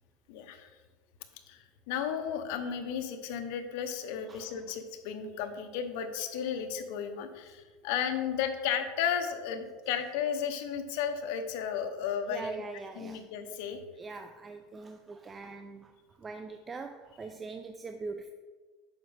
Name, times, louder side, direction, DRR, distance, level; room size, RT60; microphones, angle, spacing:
voice 1, 0.3-0.7 1.5-12.5 12.9-13.8, left 8 dB, 70° left, 6 dB, 0.9 m, -34 dB
voice 2, 12.3-13.2 14.0-15.9 16.2-18.3, right 4 dB, 20° right, 7 dB, 0.4 m, -42 dB
9.2 x 6.3 x 3.4 m, 1.4 s
supercardioid pair, 135°, 0 cm